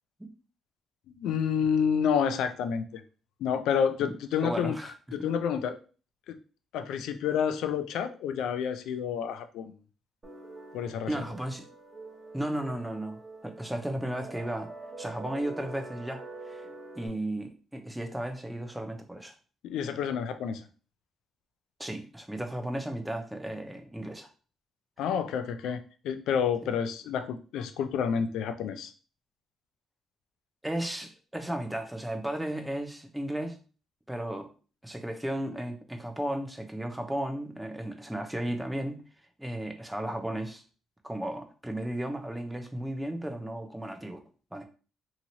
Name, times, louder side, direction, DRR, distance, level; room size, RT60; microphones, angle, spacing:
voice 1, 1.2-3.0 3.4-4.8 5.1-5.8 6.3-6.4 6.7-9.7 10.7-11.1 19.6-20.6 25.0-28.9, left 7 dB, 85° left, 9 dB, 0.3 m, -29 dB
voice 2, 4.0-5.3 11.1-11.7 12.3-14.7 15.0-16.7 16.9-19.3 21.8-24.3 30.6-33.6 34.1-34.5 34.8-39.0 39.4-40.6 41.0-44.2 44.5-44.6, right 1 dB, 5° right, 5 dB, 0.6 m, -34 dB
sound 1, 10.2-17.1, right 3 dB, 30° right, 1.0 m, -45 dB
2.8 x 2.8 x 2.6 m, 0.37 s
cardioid pair, 90°, 0 cm